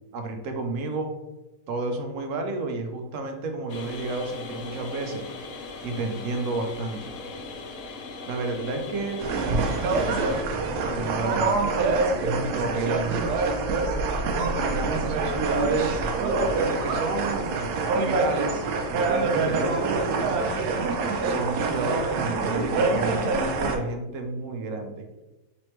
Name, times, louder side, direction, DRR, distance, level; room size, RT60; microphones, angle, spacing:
voice 1, 0.1-1.1 1.7-5.3 5.8-7.0 8.3-10.5 10.8-13.5 14.5-16.1 16.6-20.5 21.2-25.1, right 3 dB, 65° right, 4 dB, 0.9 m, -31 dB
sound 1, 3.7-10.4, left 3 dB, 65° left, 0.8 m, -39 dB
sound 2, 9.2-23.8, right 3 dB, 85° right, 1.1 m, -25 dB
4.1 x 3.1 x 3.1 m, 1.0 s
omnidirectional pair, 1.6 m